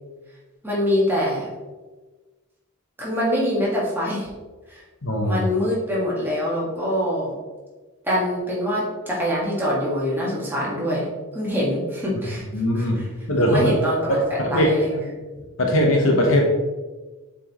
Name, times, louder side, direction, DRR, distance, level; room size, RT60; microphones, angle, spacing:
voice 1, 0.6-1.5 3.0-4.3 4.7-4.8 5.3-7.3 8.0-11.1 11.3-12.4 12.7-13.1 13.4-15.1, equal, 10° right, -6 dB, 1.6 m, -24 dB
voice 2, 5.0-5.4 12.5-13.0 13.3-13.7 14.1-14.7 15.6-16.5, equal, 60° left, 1 dB, 1.1 m, -20 dB
7.1 x 4.5 x 3.0 m, 1.3 s
head